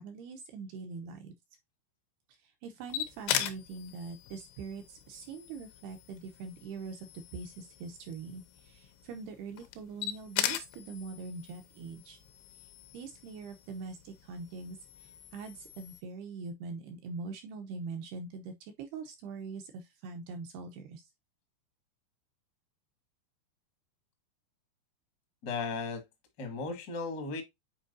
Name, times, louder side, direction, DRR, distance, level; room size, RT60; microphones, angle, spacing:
voice 1, 0.0-1.3 2.4-12.2 12.9-21.1, right 4 dB, 80° right, 2.3 m, -43 dB
sound 1, 2.9-16.0, left 12 dB, 80° left, 3.1 m, -40 dB
voice 2, 25.4-26.0 26.4-27.4, left 4 dB, 60° left, 1.0 m, -35 dB
9.0 x 4.6 x 2.6 m
omnidirectional pair, 5.5 m